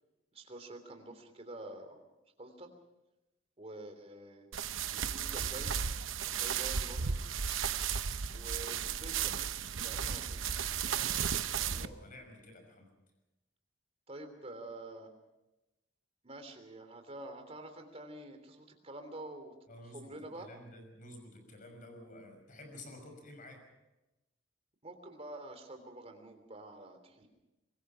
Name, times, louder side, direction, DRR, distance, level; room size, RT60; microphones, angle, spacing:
voice 1, 0.3-2.0 2.4-2.7 3.6-4.5 4.9-5.7 6.3-7.2 8.3-9.3 9.6-10.4 14.1-15.1 16.2-19.5 19.9-20.5 24.8-27.3, right 1 dB, 30° right, 6 dB, 3.3 m, -47 dB
sound 1, 4.5-11.9, right 7 dB, 85° right, 0.9 m, -34 dB
voice 2, 10.8-12.9 19.7-23.6, left 1 dB, 45° left, 5 dB, 5.9 m, -51 dB
25.0 x 21.0 x 5.8 m, 0.97 s
head